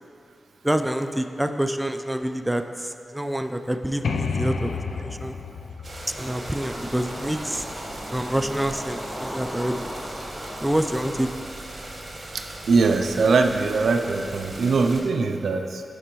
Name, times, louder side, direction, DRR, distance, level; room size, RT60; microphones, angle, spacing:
voice 1, 0.6-5.4 6.2-7.6 8.1-9.9 10.6-11.3, right 1 dB, 10° right, 7 dB, 0.4 m, -27 dB
sound 1, 4.0-7.7, left 4 dB, 90° left, 0.3 m, -31 dB
sound 2, 5.8-15.0, right 1 dB, 55° right, 1.0 m, -38 dB
sound 3, 6.1-11.3, equal, 20° left, 0.9 m, -38 dB
voice 2, 12.7-15.8, right 4 dB, 85° right, 5 dB, 0.4 m, -21 dB
11.0 x 4.4 x 2.9 m, 2.5 s
cardioid pair, 60°, 0 cm